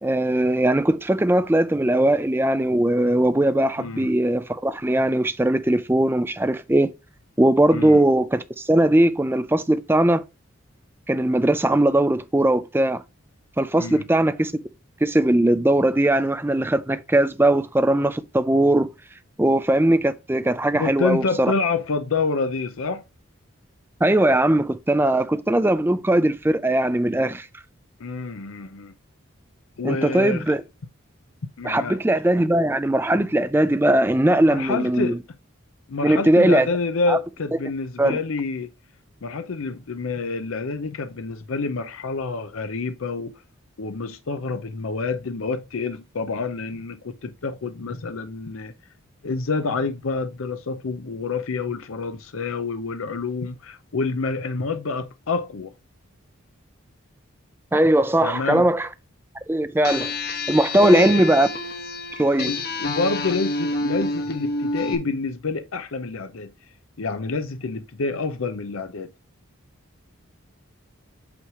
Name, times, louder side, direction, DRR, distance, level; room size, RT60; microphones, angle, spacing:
voice 1, 0.0-6.9 7.4-10.2 11.1-13.0 13.6-14.5 15.0-18.9 19.4-21.5 24.0-27.5 29.8-30.6 31.6-35.2 36.0-36.7 37.1-37.2 38.0-38.2 57.7-58.9 59.5-61.5 62.1-62.5, right 1 dB, 10° right, 0.4 m, -20 dB
voice 2, 3.8-4.1 7.7-8.0 13.8-14.0 20.7-23.0 28.0-28.9 29.8-30.4 31.6-32.0 34.5-35.2 35.9-38.7 39.2-43.3 43.8-48.7 49.2-55.7 58.2-58.7 60.7-61.3 62.4-66.5 67.0-69.1, left 4 dB, 80° left, 0.6 m, -28 dB
sound 1, 59.8-65.0, left 2 dB, 45° left, 1.2 m, -28 dB
8.4 x 3.1 x 4.9 m
head